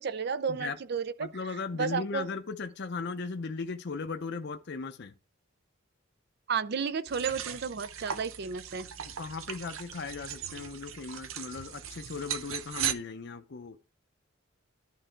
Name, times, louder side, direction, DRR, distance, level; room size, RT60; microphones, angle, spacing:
voice 1, 0.0-2.3 6.5-8.9, right 6 dB, 55° right, 0.5 m, -33 dB
voice 2, 1.2-5.1 9.2-13.8, left 4 dB, 55° left, 0.5 m, -37 dB
sound 1, 7.1-12.9, right 9 dB, 85° right, 0.7 m, -38 dB
11.5 x 3.9 x 4.5 m
head